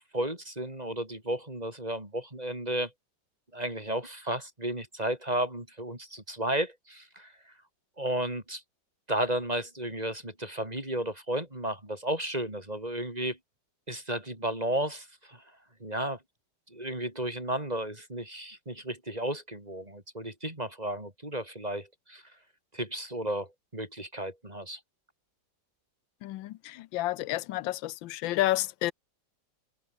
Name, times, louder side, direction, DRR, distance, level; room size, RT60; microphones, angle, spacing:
voice 1, 0.0-2.9 3.5-7.3 8.0-8.6 9.1-13.4 13.9-15.4 15.8-16.2 16.7-22.2 22.7-24.8, right 1 dB, 20° right, 5.1 m, -33 dB
voice 2, 26.9-28.9, left 16 dB, 90° left, 1.4 m, -29 dB
omnidirectional pair, 2.0 m